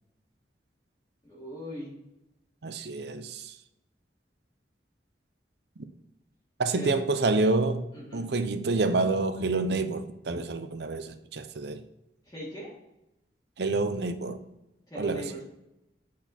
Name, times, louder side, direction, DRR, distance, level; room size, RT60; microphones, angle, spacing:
voice 1, 1.2-2.0 6.7-7.1 7.9-8.3 12.3-12.7 14.9-15.4, equal, 20° left, 1.7 m, -39 dB
voice 2, 2.6-3.5 6.6-7.9 8.1-11.8 13.6-14.4 15.0-15.3, right 3 dB, 65° right, 0.6 m, -28 dB
8.4 x 4.2 x 4.2 m
head